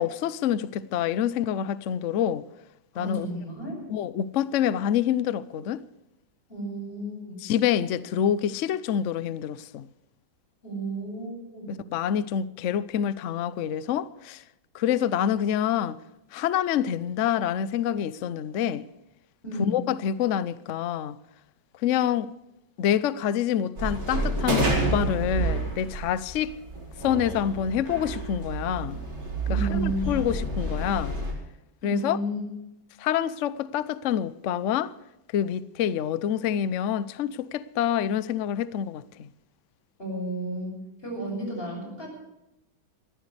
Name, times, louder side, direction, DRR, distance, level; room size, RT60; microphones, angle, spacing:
voice 1, 0.0-2.4 3.0-3.3 3.9-5.8 7.4-9.9 11.7-14.4 14.7-16.0 16.3-18.8 19.6-21.2 21.8-22.3 22.8-26.5 27.0-29.0 29.5-31.2 31.8-32.2 33.0-34.9 35.3-39.3, left 9 dB, 85° left, 0.6 m, -27 dB
voice 2, 2.9-3.8 6.5-7.4 10.6-11.7 19.4-19.8 29.5-30.1 31.8-32.4 40.0-42.1, right 1 dB, 30° left, 7.0 m, -32 dB
sound 1, 23.8-31.3, right 2 dB, 60° right, 4.8 m, -29 dB
21.5 x 15.0 x 3.3 m
omnidirectional pair, 2.1 m